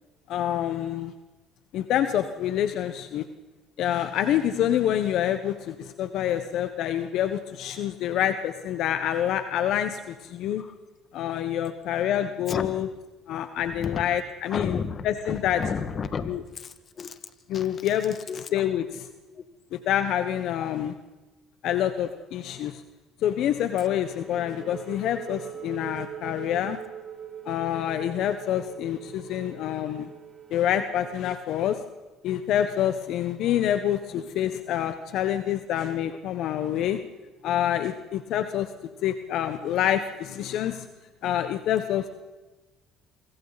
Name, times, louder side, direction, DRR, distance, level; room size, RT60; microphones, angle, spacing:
voice 1, 0.3-1.1 1.7-3.3 3.8-10.6 11.1-12.9 13.3-14.8 15.0-15.6 16.3-16.4 17.5-18.2 18.5-19.0 19.7-20.9 21.6-22.8 23.2-26.8 27.4-30.1 30.5-31.8 32.2-37.0 37.4-38.7 39.0-40.8 41.2-42.1, left 10 dB, 70° left, 9 dB, 1.2 m, -27 dB
voice 2, 13.7-14.0 14.5-17.2 17.5-17.8 18.3-18.7 19.3-19.4 20.6-20.7 34.1-34.2, left 6 dB, 45° left, 9 dB, 2.0 m, -33 dB
sound 1, 23.8-31.2, right 9 dB, 35° right, 4.6 m, -42 dB
28.0 x 25.0 x 4.2 m, 1.2 s
supercardioid pair, 85°, 0 cm